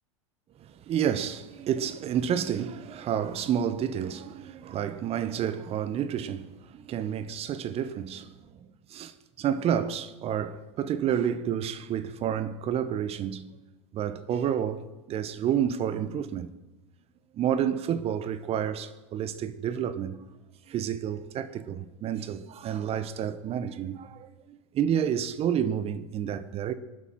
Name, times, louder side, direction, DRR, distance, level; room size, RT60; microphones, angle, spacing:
voice 1, 0.6-8.3 8.9-13.5 13.9-16.5 17.3-20.2 20.7-26.7, right 9 dB, 40° right, 1.3 m, -30 dB
25.0 x 12.0 x 4.5 m
hypercardioid pair, 85°, 16 cm